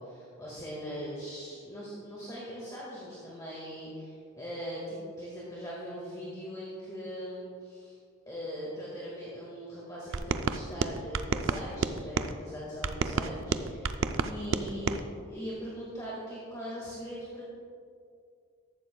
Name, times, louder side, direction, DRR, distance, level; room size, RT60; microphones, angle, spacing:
voice 1, 0.0-8.0 8.3-13.9 14.2-17.4, equal, 15° left, -6 dB, 1.8 m, -40 dB
sound 1, 10.1-12.3 12.8-15.0, right 4 dB, 60° right, 0.4 m, -31 dB
14.5 x 12.0 x 2.3 m, 2.3 s
head